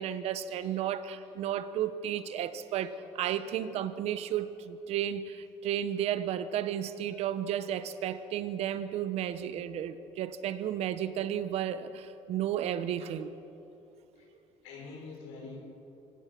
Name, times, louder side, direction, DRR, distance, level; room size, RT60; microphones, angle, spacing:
voice 1, 0.0-13.3, right 10 dB, 65° right, 13 dB, 1.1 m, -33 dB
voice 2, 14.6-15.6, left 4 dB, 90° left, -3 dB, 6.3 m, -46 dB
25.0 x 17.5 x 6.2 m, 2.9 s
cardioid pair, 100°, 11 cm